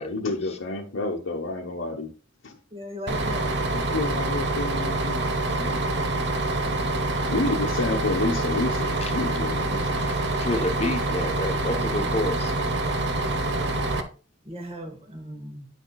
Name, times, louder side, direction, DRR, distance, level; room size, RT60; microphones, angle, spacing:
voice 1, 0.0-2.1 2.4-2.6 3.7-5.8 7.3-10.2, left 2 dB, 80° left, 1.1 m, -30 dB
voice 2, 2.7-3.5 14.4-15.7, equal, 30° right, 1.7 m, -37 dB
Bus, 3.1-14.0, right 2 dB, 60° right, 1.1 m, -26 dB
voice 3, 10.4-12.5, left 1 dB, 30° left, 0.9 m, -28 dB
9.9 x 6.2 x 2.4 m
head